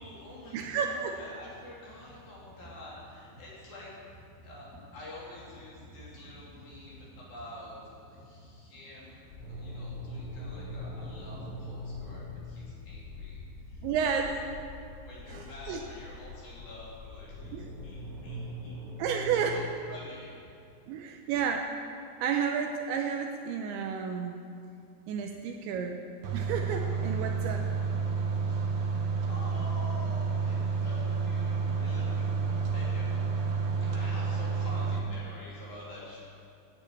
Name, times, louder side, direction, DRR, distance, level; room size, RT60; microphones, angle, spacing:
voice 1, 0.0-13.9 14.1-14.4 15.0-18.8 19.2-20.5 28.4-36.2, left 1 dB, 50° left, -6 dB, 4.3 m, -47 dB
voice 2, 0.5-1.2 13.8-14.4 15.3-15.8 17.5-17.7 19.0-19.6 20.9-21.7 22.2-24.4 25.1-26.0 26.3-27.7, right 7 dB, 85° right, 3 dB, 2.8 m, -31 dB
sound 1, 9.3-18.2, left 5 dB, 80° left, 3.6 m, -47 dB
sound 2, 9.4-13.5 17.2-19.6, equal, 45° right, 1.4 m, -41 dB
sound 3, 26.2-35.0, right 5 dB, 65° right, 2.5 m, -30 dB
11.5 x 8.9 x 8.6 m, 2.5 s
omnidirectional pair, 5.7 m